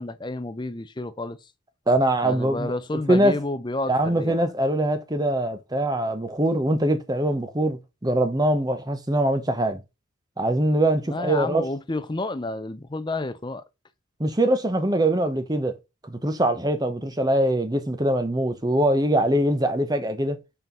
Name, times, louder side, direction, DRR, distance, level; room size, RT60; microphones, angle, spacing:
voice 1, 0.0-1.5 2.2-4.4 11.1-13.6, left 2 dB, 20° left, 0.5 m, -30 dB
voice 2, 1.9-2.7 3.1-3.4 3.9-9.8 10.4-11.6 14.2-15.8 16.0-20.4, right 1 dB, 20° right, 0.8 m, -23 dB
5.7 x 4.5 x 5.3 m
head